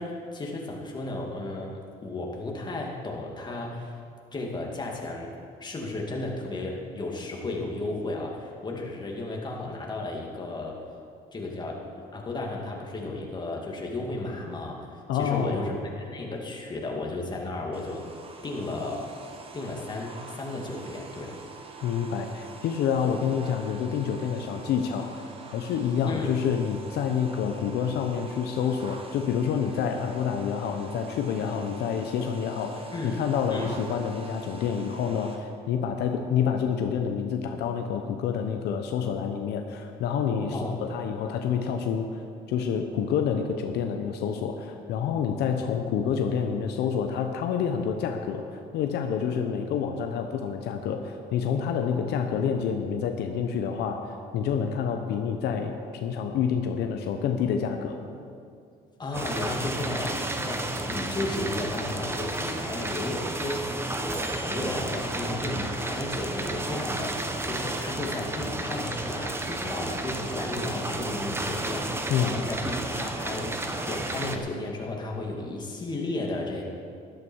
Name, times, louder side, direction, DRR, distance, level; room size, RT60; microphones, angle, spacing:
voice 1, 0.0-1.7 2.0-3.9 4.3-5.3 5.6-10.8 11.3-18.0 18.4-19.0 19.5-21.4 26.1-26.4 32.9-33.2 33.5-33.8 40.5-40.8 59.0-76.6, left 2 dB, 25° left, -1 dB, 2.3 m, -34 dB
voice 2, 15.1-15.6 21.8-42.2 42.5-48.5 48.7-58.0 72.1-72.3, left 7 dB, 75° left, 5 dB, 0.9 m, -28 dB
sound 1, 17.7-35.4, right 3 dB, 35° right, 1.4 m, -45 dB
sound 2, 59.1-74.4, right 2 dB, 15° right, 0.9 m, -32 dB
13.0 x 12.0 x 4.6 m, 2.4 s
cardioid pair, 110°, 17 cm